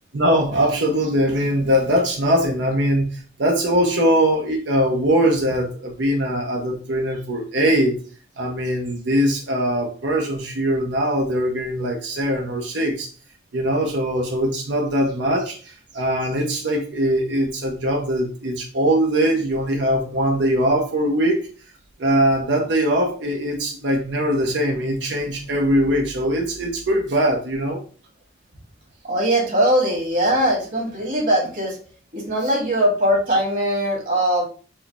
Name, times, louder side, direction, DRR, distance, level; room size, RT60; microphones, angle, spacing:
voice 1, 0.1-8.0 8.4-13.1 13.5-21.5 22.0-27.8, equal, 75° right, 1 dB, 0.7 m, -21 dB
voice 2, 29.0-31.8 32.1-34.5, right 1 dB, 45° right, -1 dB, 1.5 m, -20 dB
4.6 x 2.0 x 4.1 m, 0.39 s
head